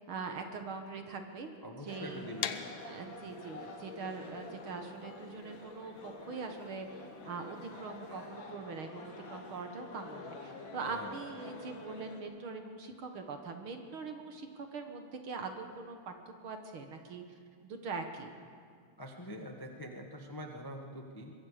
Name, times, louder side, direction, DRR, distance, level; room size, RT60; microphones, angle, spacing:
voice 1, 0.1-1.5 1.8-2.3 2.8-6.9 7.2-17.2 17.6-18.3, right 4 dB, 55° right, 5 dB, 1.8 m, -42 dB
voice 2, 1.6-3.3 10.8-11.2 19.0-21.3, equal, 30° left, 2 dB, 0.4 m, -45 dB
sound 1, 1.9-12.2, left 3 dB, 45° left, 2.2 m, -48 dB
sound 2, 2.4-8.2, left 10 dB, 70° left, 1.5 m, -44 dB
24.5 x 22.0 x 5.0 m, 2.2 s
omnidirectional pair, 3.4 m